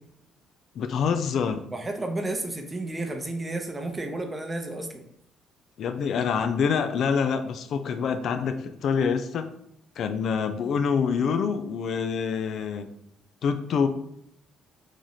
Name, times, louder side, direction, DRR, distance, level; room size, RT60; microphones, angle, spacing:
voice 1, 0.8-1.6 5.8-9.5 10.0-12.9 13.4-13.9, left 6 dB, 65° left, 8 dB, 0.3 m, -26 dB
voice 2, 1.7-5.0, right 2 dB, 20° right, 4 dB, 0.7 m, -32 dB
3.1 x 2.6 x 3.9 m, 0.73 s
cardioid pair, 90°, 0 cm